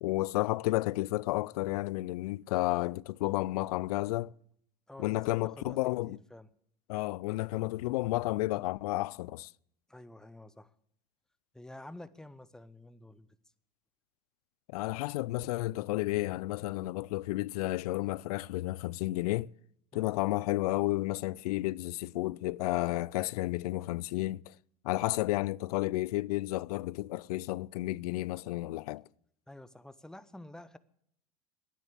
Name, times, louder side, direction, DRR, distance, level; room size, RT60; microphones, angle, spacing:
voice 1, 0.0-4.3 5.0-6.2 6.9-9.5 14.7-19.5 19.9-24.5 24.8-29.0, left 18 dB, 80° left, 0.4 m, -32 dB
voice 2, 4.9-5.8 6.1-6.5 9.9-10.7 11.5-13.4 19.9-20.1 29.5-30.8, left 1 dB, 5° left, 0.8 m, -49 dB
10.5 x 9.5 x 8.3 m
hypercardioid pair, 95°, 19 cm